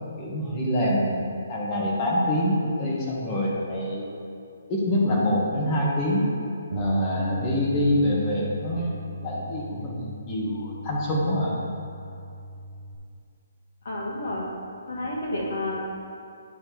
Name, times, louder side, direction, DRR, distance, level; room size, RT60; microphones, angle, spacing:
voice 1, 0.2-4.1 4.7-6.3 6.7-11.6, left 1 dB, 20° left, -4 dB, 1.4 m, -25 dB
Bass guitar, 6.7-13.0, right 1 dB, 40° right, 0.9 m, -35 dB
voice 2, 13.8-14.5 14.9-16.1, left 1 dB, 65° left, -4 dB, 1.7 m, -30 dB
9.7 x 3.4 x 4.6 m, 2.5 s
hypercardioid pair, 165°, 0 cm